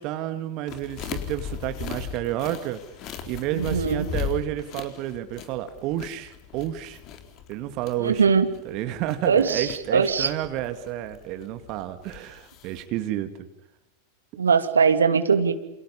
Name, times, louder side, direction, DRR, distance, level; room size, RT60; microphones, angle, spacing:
voice 1, 0.0-2.8 3.3-7.0 7.5-8.2 8.6-13.3, right 13 dB, 40° right, 9 dB, 2.3 m, -30 dB
sound 1, 0.7-12.9, left 8 dB, 40° left, 4.0 m, -38 dB
voice 2, 3.5-4.1 8.0-8.5 9.2-10.3 14.4-15.5, right 6 dB, 70° right, 9 dB, 2.5 m, -21 dB
29.5 x 29.0 x 5.6 m, 0.92 s
figure-of-eight pair, 90°, 0 cm